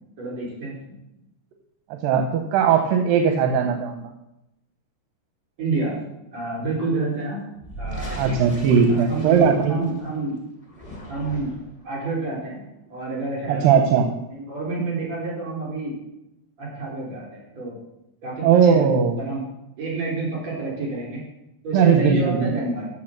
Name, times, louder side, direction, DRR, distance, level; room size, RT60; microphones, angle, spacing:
voice 1, 0.2-0.8 5.6-6.0 6.3-7.4 7.8-8.2 8.9-10.4 11.1-11.6 11.8-12.6 12.9-13.7 14.4-16.0 16.6-17.7 18.2-19.4 19.8-21.2 21.6-22.9, right 3 dB, 50° right, -4 dB, 5.1 m, -29 dB
voice 2, 2.0-4.1 8.2-9.8 13.5-14.1 18.4-19.2 21.7-22.6, right 7 dB, 80° right, 4 dB, 2.5 m, -18 dB
sound 1, 7.6-10.1 10.6-11.8, right 1 dB, 20° left, 0.9 m, -36 dB
13.5 x 4.5 x 6.5 m, 0.87 s
omnidirectional pair, 4.0 m